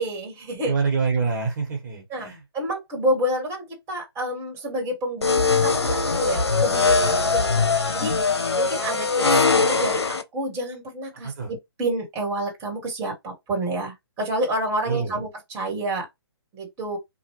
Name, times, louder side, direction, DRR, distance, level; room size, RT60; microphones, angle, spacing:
voice 1, 0.0-0.7 2.1-8.2 8.5-16.1 16.5-17.0, right 1 dB, 20° right, 1.4 m, -29 dB
voice 2, 0.6-2.4 11.2-11.5 14.9-15.2, right 5 dB, 45° right, 1.3 m, -26 dB
sound 1, 5.2-10.2, left 4 dB, 85° left, 0.7 m, -21 dB
3.0 x 2.3 x 3.0 m
figure-of-eight pair, 140°, 14 cm